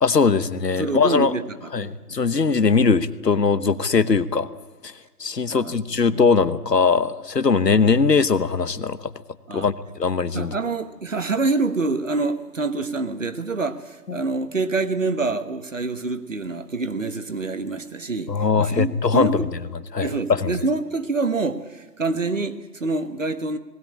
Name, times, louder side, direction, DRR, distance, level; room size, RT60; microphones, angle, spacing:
voice 1, 0.0-1.3 1.7-4.5 4.8-4.9 5.2-9.1 9.5-9.7 10.0-10.5 14.1-14.2 18.3-19.4 19.9-20.5, left 5 dB, 75° left, 1.2 m, -20 dB
voice 2, 0.8-2.3 5.5-6.1 9.5-9.7 10.3-19.5 20.0-23.6, right 3 dB, 50° right, 1.3 m, -26 dB
19.5 x 17.0 x 8.7 m
figure-of-eight pair, 170°, 49 cm